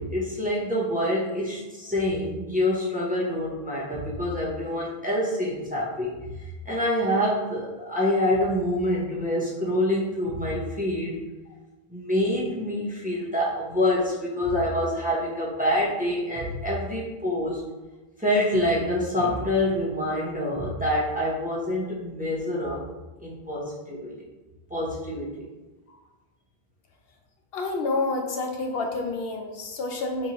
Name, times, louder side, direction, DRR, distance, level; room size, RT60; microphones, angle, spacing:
voice 1, 0.0-11.2 11.9-17.6 18.2-22.8 23.2-24.2 24.7-25.5, left 1 dB, 10° right, -5 dB, 0.7 m, -26 dB
voice 2, 27.5-30.3, left 3 dB, 75° left, 2 dB, 0.8 m, -29 dB
4.2 x 3.2 x 2.9 m, 1.1 s
omnidirectional pair, 1.0 m